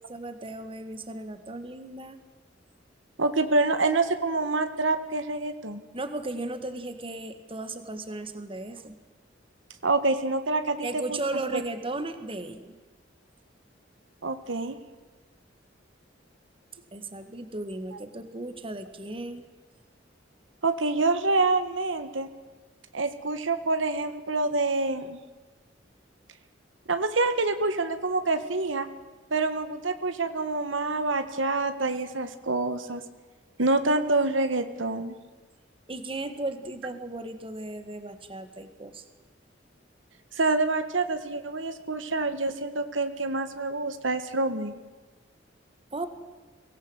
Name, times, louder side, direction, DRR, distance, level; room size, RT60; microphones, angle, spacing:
voice 1, 0.1-2.2 5.9-9.0 10.8-12.8 16.9-19.4 35.9-39.0 45.9-46.1, right 2 dB, 30° right, 9 dB, 1.8 m, -35 dB
voice 2, 3.2-5.8 9.8-11.2 11.5-11.6 14.2-14.8 17.9-18.0 20.6-22.3 22.9-25.2 26.9-28.9 29.3-33.0 33.6-35.1 40.3-44.8, right 3 dB, 90° right, 9 dB, 1.6 m, -26 dB
23.5 x 17.5 x 8.1 m, 1.3 s
head